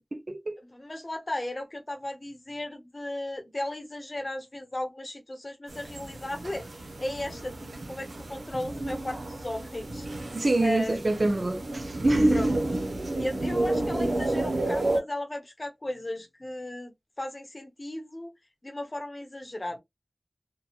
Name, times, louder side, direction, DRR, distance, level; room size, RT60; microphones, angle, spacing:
voice 1, 0.0-0.6 10.3-12.4, right 2 dB, 45° right, 0.6 m, -26 dB
voice 2, 0.7-11.0 12.3-12.6 13.2-18.3 18.6-19.8, left 1 dB, 35° left, 0.9 m, -36 dB
sound 1, 5.7-15.0, right 1 dB, 90° right, 0.8 m, -30 dB
2.9 x 2.3 x 2.4 m
wide cardioid pair, 75°, 0 cm